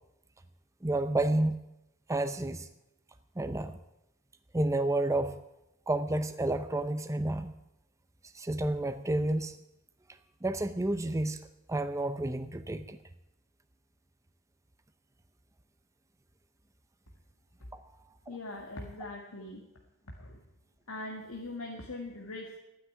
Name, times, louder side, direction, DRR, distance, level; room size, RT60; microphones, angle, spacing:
voice 1, 0.8-1.6 2.1-2.7 3.4-3.8 4.5-5.4 5.9-7.5 8.3-9.6 10.4-11.4 11.7-13.0 17.7-17.8, right 2 dB, 15° right, 9 dB, 0.6 m, -30 dB
voice 2, 18.3-19.6 20.1-20.4 20.9-22.6, left 2 dB, 90° left, 0 dB, 1.8 m, -41 dB
12.0 x 9.9 x 9.4 m, 0.88 s
head